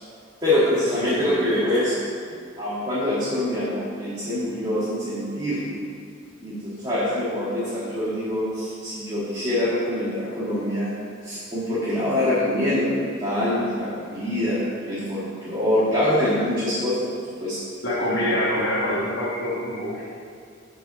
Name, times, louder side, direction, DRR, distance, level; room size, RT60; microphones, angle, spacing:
voice 1, 0.4-1.9 2.6-5.7 6.4-10.9 11.2-14.6 14.9-17.0 17.4-17.6 18.1-18.3, left 1 dB, 20° right, -11 dB, 1.7 m, -24 dB
voice 2, 1.0-1.5 17.8-20.1, left 1 dB, 60° left, -9 dB, 1.5 m, -26 dB
6.9 x 4.5 x 6.7 m, 2.3 s
head